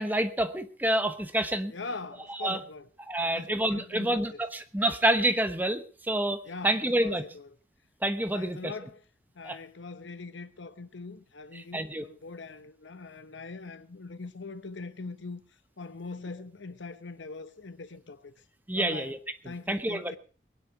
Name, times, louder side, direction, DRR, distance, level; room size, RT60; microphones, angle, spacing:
voice 1, 0.0-1.7 2.4-2.6 3.1-7.2 8.0-8.7 9.4-9.6 11.5-12.1 18.7-19.2 19.7-20.2, right 1 dB, 10° right, 1.0 m, -28 dB
voice 2, 1.7-2.9 3.2-4.4 6.5-7.5 8.3-9.0 9.3-15.4 15.8-18.3 18.7-19.1 19.4-20.2, left 3 dB, 85° left, 1.0 m, -42 dB
21.5 x 9.8 x 4.8 m
head